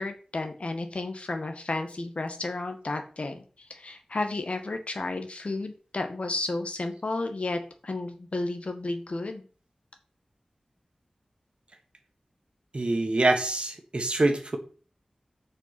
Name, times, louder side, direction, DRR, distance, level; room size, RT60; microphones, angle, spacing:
voice 1, 0.0-9.4, left 2 dB, 60° left, 6 dB, 1.6 m, -32 dB
voice 2, 12.7-14.6, right 2 dB, 50° right, 6 dB, 1.6 m, -25 dB
6.5 x 5.9 x 6.1 m, 0.39 s
wide cardioid pair, 75°, 2 cm